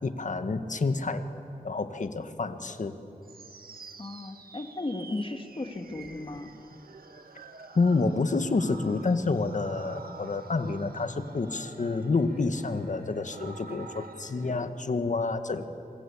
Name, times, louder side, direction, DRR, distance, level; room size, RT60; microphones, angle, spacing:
voice 1, 0.0-1.3 1.6-3.0 7.7-15.6, left 3 dB, 55° left, 9 dB, 1.6 m, -28 dB
sound 1, 3.2-14.5, right 4 dB, 85° right, 1.7 m, -48 dB
voice 2, 4.0-6.5, left 2 dB, 35° left, 5 dB, 2.2 m, -35 dB
27.5 x 25.0 x 8.5 m, 2.7 s
wide cardioid pair, 95°, 15 cm